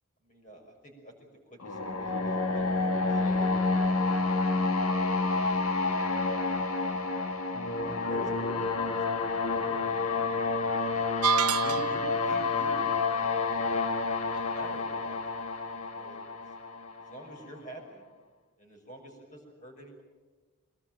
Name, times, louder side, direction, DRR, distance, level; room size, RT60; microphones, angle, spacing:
voice 1, 0.2-5.2 7.4-7.6 7.8-10.1 11.6-13.9 14.5-16.2 17.0-18.0 18.6-20.0, right 1 dB, 35° left, 3 dB, 6.0 m, -48 dB
sound 1, 1.6-17.4, left 3 dB, 75° left, 1.8 m, -29 dB
sound 2, 11.2-12.2, right 6 dB, 80° right, 0.8 m, -27 dB
22.5 x 19.5 x 9.0 m, 1.3 s
head